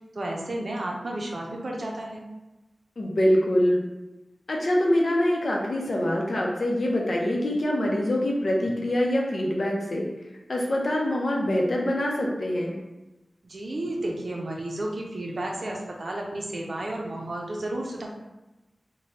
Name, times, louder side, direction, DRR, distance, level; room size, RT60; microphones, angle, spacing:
voice 1, 0.1-2.2 13.4-18.1, right 1 dB, 60° right, -1 dB, 0.5 m, -32 dB
voice 2, 3.0-3.8 4.5-10.1 10.5-12.8, left 1 dB, 65° left, -2 dB, 0.6 m, -24 dB
2.8 x 2.2 x 3.1 m, 1.0 s
wide cardioid pair, 75°, 0 cm